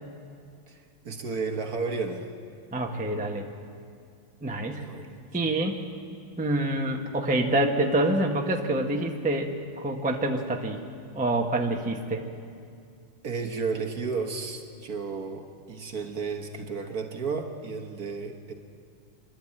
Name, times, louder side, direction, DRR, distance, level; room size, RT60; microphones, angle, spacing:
voice 1, 0.7-2.3 4.7-5.2 13.2-18.5, right 4 dB, 50° right, 4 dB, 1.5 m, -33 dB
voice 2, 2.7-3.5 4.4-4.8 5.3-5.8 6.4-10.8 11.1-12.2, right 1 dB, 5° right, 2 dB, 0.8 m, -26 dB
25.5 x 11.5 x 8.8 m, 2.3 s
omnidirectional pair, 2.2 m